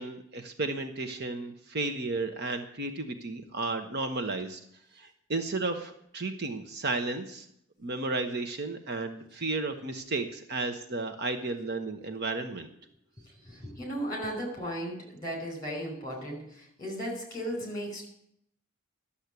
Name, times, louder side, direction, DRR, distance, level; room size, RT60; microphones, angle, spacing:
voice 1, 0.0-4.6 4.9-7.5 7.8-12.7, right 3 dB, 50° right, 7 dB, 1.0 m, -33 dB
voice 2, 13.4-18.1, equal, 20° left, 1 dB, 4.9 m, -36 dB
12.0 x 7.2 x 8.2 m, 0.71 s
head